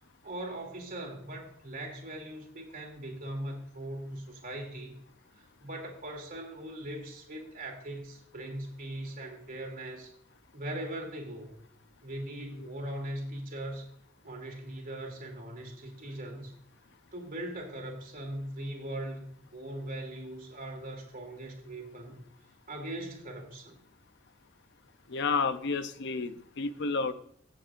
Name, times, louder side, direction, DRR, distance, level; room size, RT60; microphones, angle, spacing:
voice 1, 0.2-4.9 5.3-10.1 10.5-11.6 12.0-13.8 14.2-16.5 17.1-22.2 22.7-23.8, right 1 dB, 45° right, 2 dB, 2.7 m, -40 dB
voice 2, 25.1-27.1, left 4 dB, 60° left, 11 dB, 0.6 m, -30 dB
16.0 x 7.3 x 2.5 m, 0.69 s
head